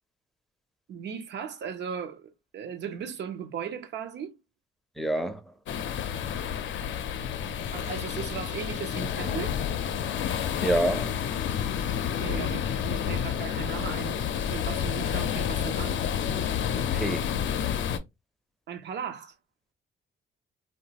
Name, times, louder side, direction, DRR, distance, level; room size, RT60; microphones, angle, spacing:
voice 1, 0.9-4.3 7.7-9.5 12.2-14.2 14.5-16.0 18.7-19.3, right 7 dB, 60° right, 0.6 m, -37 dB
voice 2, 5.0-5.4 10.6-11.2 16.7-17.3, right 1 dB, ahead, 0.5 m, -27 dB
sound 1, 5.7-18.0, left 8 dB, 70° left, 0.5 m, -30 dB
2.8 x 2.2 x 2.8 m
cardioid pair, 90°, 20 cm